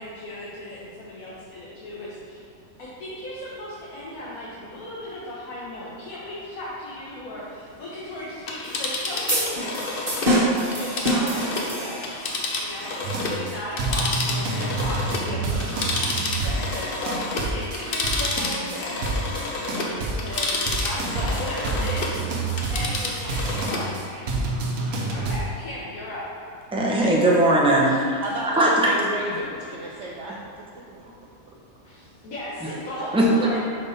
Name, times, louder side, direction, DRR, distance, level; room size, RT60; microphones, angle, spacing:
voice 1, 0.0-2.4 2.8-9.7 10.8-12.9 13.3-19.2 19.7-22.2 22.7-23.9 25.1-26.2 31.8-33.6, left 1 dB, 70° left, -8 dB, 1.5 m, -36 dB
Telephone, 8.3-13.4 13.7-22.2 22.5-23.9 24.3-24.4, left 3 dB, 50° left, 0.8 m, -30 dB
sound 1, 9.3-12.3, right 1 dB, 40° right, 1.5 m, -25 dB
sound 2, 13.0-25.4, right 2 dB, 75° right, 1.3 m, -29 dB
voice 2, 26.7-28.2 28.6-28.9 33.1-33.3, right 1 dB, 5° right, -3 dB, 0.5 m, -19 dB
voice 3, 27.8-30.4, right 2 dB, 60° right, -4 dB, 0.9 m, -32 dB
5.4 x 5.3 x 4.2 m, 2.5 s
omnidirectional pair, 1.5 m